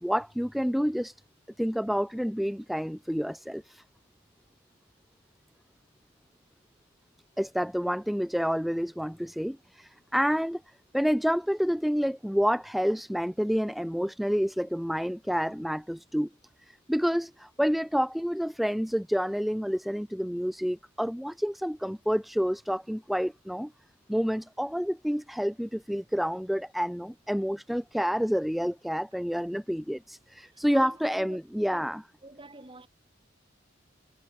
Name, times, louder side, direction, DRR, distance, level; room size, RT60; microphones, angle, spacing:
voice 1, 0.0-1.1 1.6-3.8 7.4-10.6 10.9-16.3 16.7-23.7 24.1-32.0, equal, ahead, 0.4 m, -29 dB
voice 2, 30.7-31.4 31.7-31.9 32.2-32.9, right 2 dB, 25° right, 6.4 m, -47 dB
head